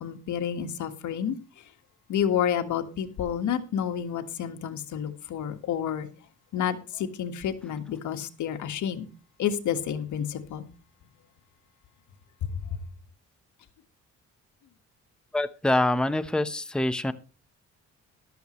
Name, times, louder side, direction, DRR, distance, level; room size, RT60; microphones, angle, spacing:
voice 1, 0.0-1.4 2.1-6.1 6.5-9.1 9.4-10.7, left 9 dB, 75° left, 1.8 m, -29 dB
voice 2, 15.3-17.1, left 1 dB, 5° left, 1.0 m, -25 dB
14.0 x 12.5 x 3.2 m
cardioid pair, 90°, 30 cm